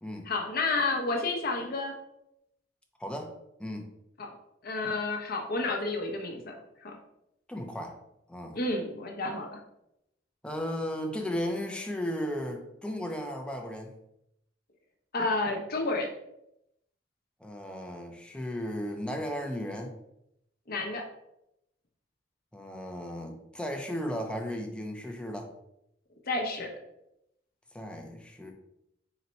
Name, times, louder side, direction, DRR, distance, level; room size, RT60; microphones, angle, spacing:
voice 1, 0.3-1.9 4.2-4.4 4.6-6.5 6.8-7.0 8.5-9.5 15.1-16.1 20.7-21.0 26.3-26.7, left 3 dB, 55° left, 1 dB, 0.7 m, -30 dB
voice 2, 3.0-3.9 7.5-8.0 8.3-8.6 10.4-13.9 17.4-19.9 22.5-25.5 27.7-28.5, equal, 5° left, 2 dB, 0.5 m, -35 dB
4.1 x 2.2 x 3.9 m, 0.81 s
head